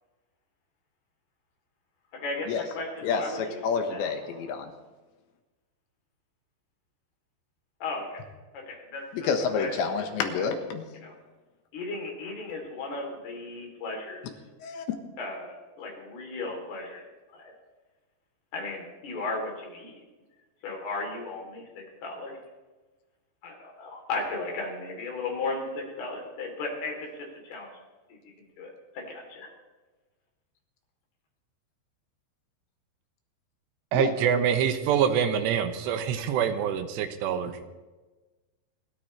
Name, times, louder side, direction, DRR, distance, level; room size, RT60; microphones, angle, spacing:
voice 1, 2.1-4.5 7.8-8.2 8.5-9.3 9.5-10.1 10.3-10.5 10.9-11.1 11.7-14.3 15.2-17.0 17.3-17.5 18.5-19.9 20.6-22.4 23.4-27.7 28.6-29.5, left 3 dB, 65° left, 0 dB, 5.2 m, -36 dB
voice 2, 3.6-4.7 9.1-10.8 14.6-14.9 33.9-34.1, left 6 dB, 80° left, 5 dB, 3.6 m, -28 dB
voice 3, 33.9-37.5, right 8 dB, 75° right, 8 dB, 3.1 m, -25 dB
27.5 x 13.0 x 3.3 m, 1.2 s
omnidirectional pair, 5.2 m